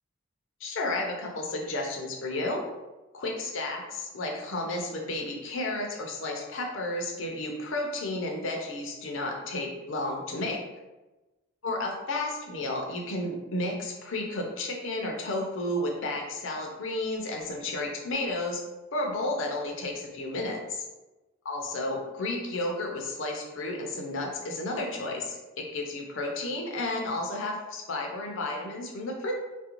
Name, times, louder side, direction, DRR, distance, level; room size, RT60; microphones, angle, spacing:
voice 1, 0.6-2.6 3.1-10.6 11.6-18.6 18.9-20.8 21.5-29.3, left 2 dB, 60° left, 1 dB, 0.5 m, -32 dB
2.5 x 2.1 x 2.9 m, 1.1 s
head